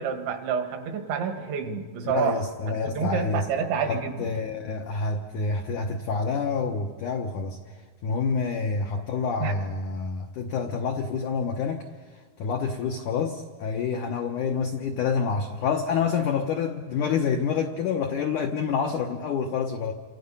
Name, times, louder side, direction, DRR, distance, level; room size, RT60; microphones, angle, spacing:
voice 1, 0.0-2.4 2.7-4.3 9.4-9.6, right 6 dB, 80° right, 6 dB, 4.0 m, -29 dB
voice 2, 2.0-3.5 3.9-7.8 8.0-11.9 12.1-19.9, left 5 dB, 80° left, 4 dB, 1.8 m, -28 dB
29.0 x 26.0 x 5.6 m, 1.5 s
omnidirectional pair, 5.2 m